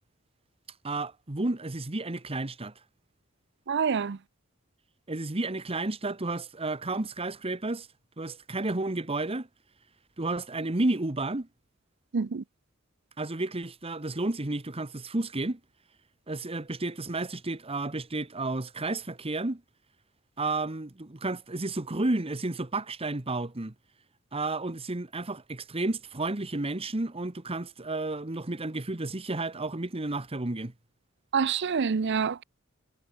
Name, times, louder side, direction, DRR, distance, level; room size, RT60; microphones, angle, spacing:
voice 1, 0.8-2.7 5.1-7.9 8.2-9.5 10.2-11.5 13.2-15.6 16.3-19.6 20.4-23.7 24.3-30.7, right 2 dB, 30° right, 1.2 m, -31 dB
voice 2, 3.7-4.2 12.1-12.4 31.3-32.4, right 6 dB, 60° right, 0.5 m, -27 dB
head